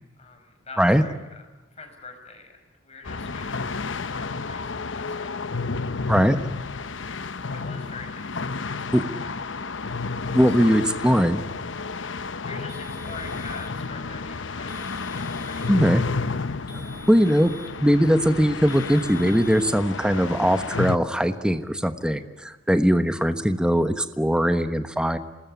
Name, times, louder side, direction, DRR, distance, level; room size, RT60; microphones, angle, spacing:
voice 1, 0.2-1.4 1.7-5.4 7.5-9.1 10.0-11.1 11.9-15.7 16.1-17.0 22.8-23.0, left 4 dB, 35° left, 5 dB, 5.5 m, -45 dB
sound 1, 3.0-21.0, left 4 dB, 70° left, 0.9 m, -31 dB
voice 2, 10.3-11.4 15.7-16.0 17.1-17.5 17.8-25.2, equal, 5° right, 9 dB, 1.2 m, -20 dB
sound 2, 12.7-13.8 14.7-15.8 16.7-17.8 18.7-19.7, right 1 dB, 50° left, 3.4 m, -46 dB
27.0 x 20.5 x 9.6 m, 1.2 s
head